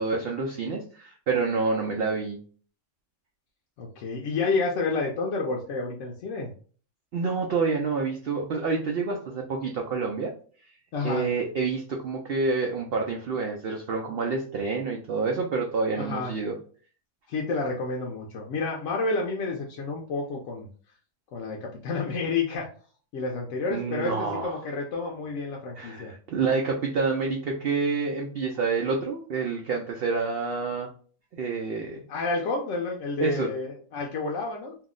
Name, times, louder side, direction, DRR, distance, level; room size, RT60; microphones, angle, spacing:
voice 1, 0.0-2.4 7.1-10.3 11.0-16.6 23.7-24.6 25.8-30.9 31.3-32.0 33.2-33.5, right 4 dB, 85° right, 1 dB, 0.5 m, -28 dB
voice 2, 3.8-6.5 10.9-11.3 16.0-16.3 17.3-20.7 21.3-22.7 23.1-26.1 32.1-34.8, left 3 dB, 65° left, -1 dB, 0.8 m, -30 dB
2.7 x 2.0 x 3.6 m, 0.43 s
omnidirectional pair, 1.5 m